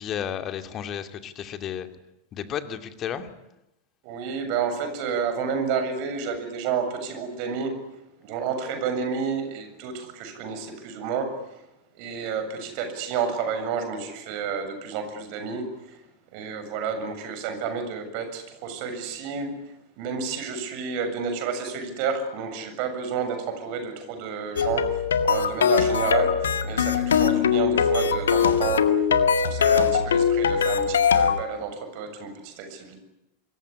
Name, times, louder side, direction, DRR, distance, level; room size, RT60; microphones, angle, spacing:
voice 1, 0.0-1.9 2.3-3.3, left 9 dB, 30° left, 8 dB, 2.6 m, -32 dB
voice 2, 4.0-7.7 8.2-11.3 12.0-16.0 16.3-19.5 20.0-28.8 29.4-33.0, right 6 dB, 45° right, 8 dB, 7.3 m, -30 dB
sound 1, 24.6-31.4, left 7 dB, 65° left, 1.9 m, -21 dB
27.0 x 22.0 x 9.9 m, 0.92 s
figure-of-eight pair, 90°, 0 cm